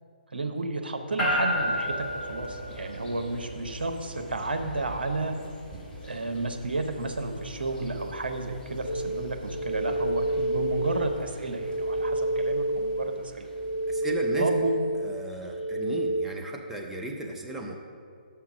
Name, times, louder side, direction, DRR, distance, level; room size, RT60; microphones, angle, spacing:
voice 1, 0.3-5.3 6.0-13.5 14.4-14.8, right 2 dB, 75° right, 5 dB, 0.8 m, -32 dB
sound 1, 1.2-15.5, equal, 15° left, 1.5 m, -37 dB
sound 2, 8.9-16.3, right 1 dB, 85° left, 0.5 m, -29 dB
voice 2, 13.9-14.5 15.0-17.7, right 2 dB, 5° right, 0 dB, 0.6 m, -35 dB
5.9 x 5.8 x 6.0 m, 2.3 s
figure-of-eight pair, 135°, 5 cm